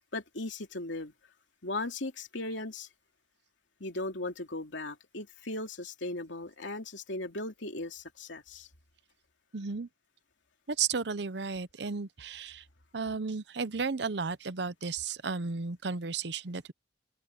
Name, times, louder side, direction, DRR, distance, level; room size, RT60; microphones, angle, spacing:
voice 1, 0.1-1.1 1.6-2.9 3.8-8.7, left 2 dB, 90° left, 2.8 m, -37 dB
voice 2, 9.5-9.9 10.7-12.6 12.9-16.7, right 5 dB, 70° right, 0.8 m, -34 dB
open air
head